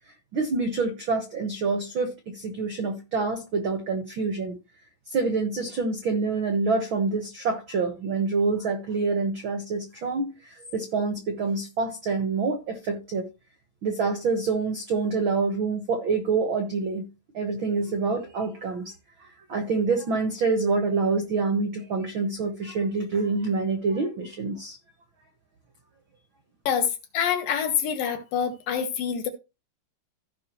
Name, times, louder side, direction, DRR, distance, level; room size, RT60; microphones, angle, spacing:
voice 1, 0.3-4.5 5.1-13.2 13.8-17.1 17.3-18.9 19.5-24.8, right 4 dB, 75° right, 1.1 m, -26 dB
voice 2, 27.1-29.3, left 8 dB, 75° left, 3.0 m, -26 dB
15.5 x 5.5 x 3.0 m
omnidirectional pair, 4.1 m